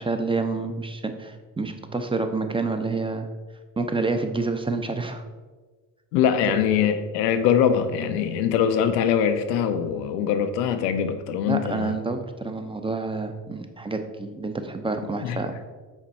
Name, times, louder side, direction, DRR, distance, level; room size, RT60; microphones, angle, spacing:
voice 1, 0.0-3.3 3.8-5.2 11.5-15.7, right 3 dB, 10° right, 7 dB, 0.6 m, -28 dB
voice 2, 6.1-12.0 15.2-15.4, left 8 dB, 90° left, 8 dB, 0.7 m, -23 dB
6.0 x 4.3 x 4.1 m, 1.4 s
hypercardioid pair, 65°, 47 cm